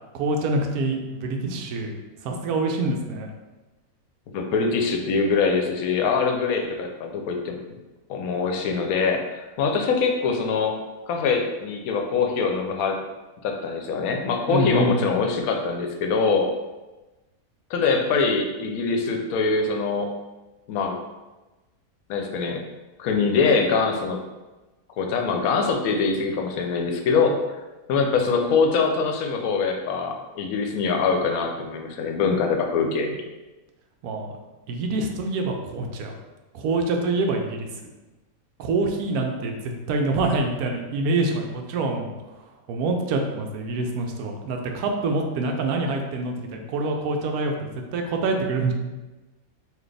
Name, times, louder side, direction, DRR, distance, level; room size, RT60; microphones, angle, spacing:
voice 1, 0.1-2.0 2.2-3.3 14.5-15.0 34.0-34.4 34.7-36.1 36.5-37.7 38.6-42.1 42.7-48.7, right 2 dB, 90° right, 3 dB, 1.1 m, -26 dB
voice 2, 4.3-7.6 8.1-10.8 11.1-13.0 13.4-16.5 17.7-20.1 20.7-21.0 22.1-22.6 23.0-24.2 25.0-27.6 27.9-33.2, left 4 dB, 80° left, 3 dB, 1.0 m, -23 dB
4.0 x 2.8 x 3.3 m, 1.1 s
omnidirectional pair, 1.5 m